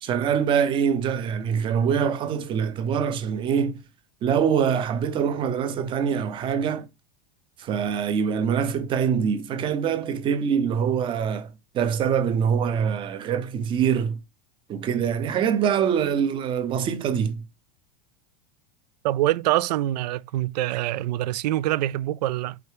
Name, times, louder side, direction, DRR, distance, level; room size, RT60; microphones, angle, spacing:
voice 1, 0.0-3.8 4.2-6.9 7.6-14.2 14.7-17.4, right 7 dB, 25° right, 0.7 m, -24 dB
voice 2, 19.0-22.6, right 15 dB, 75° right, 0.4 m, -25 dB
5.0 x 4.6 x 4.8 m
supercardioid pair, 160°, 21 cm